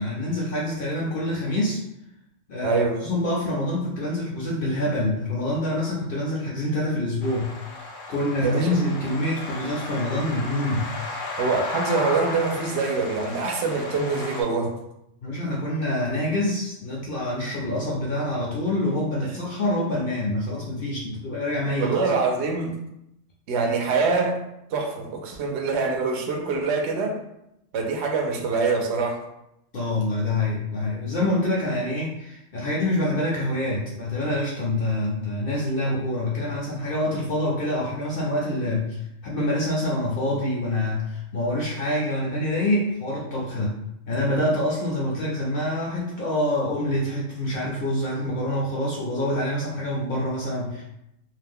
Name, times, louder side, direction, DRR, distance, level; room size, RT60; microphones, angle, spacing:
voice 1, 0.0-1.8 2.5-7.5 8.1-10.9 15.2-22.0 29.7-39.0 39.2-50.8, left 1 dB, 55° left, -4 dB, 0.7 m, -26 dB
voice 2, 2.6-3.0 8.4-8.7 11.4-14.7 19.3-19.6 21.8-22.7 23.5-24.4 24.7-27.1 27.7-29.2, right 4 dB, 65° right, 3 dB, 0.8 m, -24 dB
sound 1, 7.2-14.4, left 2 dB, 75° left, 1.0 m, -34 dB
2.6 x 2.1 x 3.5 m, 0.83 s
omnidirectional pair, 1.3 m